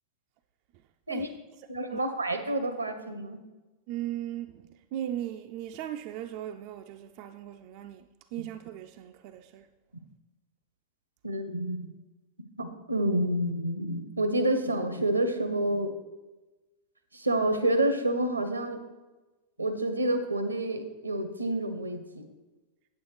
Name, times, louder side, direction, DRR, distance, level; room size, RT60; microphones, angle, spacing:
voice 1, 1.1-2.0 3.9-8.1 8.3-9.7, right 12 dB, 45° right, 0.3 m, -38 dB
voice 2, 1.7-3.4 9.9-10.0 11.2-11.8 12.6-15.9 17.1-18.8 19.6-22.2, right 1 dB, 80° right, 0.7 m, -28 dB
8.3 x 8.3 x 3.2 m
figure-of-eight pair, 90°, 0 cm